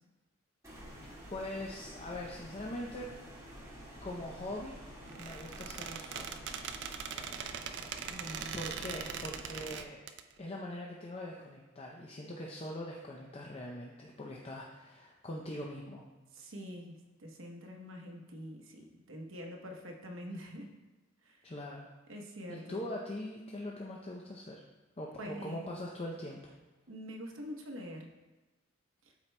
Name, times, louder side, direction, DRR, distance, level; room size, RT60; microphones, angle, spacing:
sound 1, 0.6-9.8, equal, 15° right, 1.5 m, -49 dB
voice 1, 1.3-3.1 4.0-4.8 5.2-6.4 8.5-10.0 10.4-16.0 21.4-21.9 22.5-24.6 25.0-26.5, left 1 dB, 30° left, -2 dB, 0.5 m, -42 dB
Squeak, 5.1-10.2, right 7 dB, 60° right, 0.4 m, -41 dB
voice 2, 8.0-8.5 16.3-20.8 21.2-21.5 22.1-22.9 25.2-25.8 26.9-28.1 29.0-29.1, equal, 75° right, 2 dB, 1.0 m, -45 dB
12.0 x 4.4 x 2.2 m, 1.1 s
head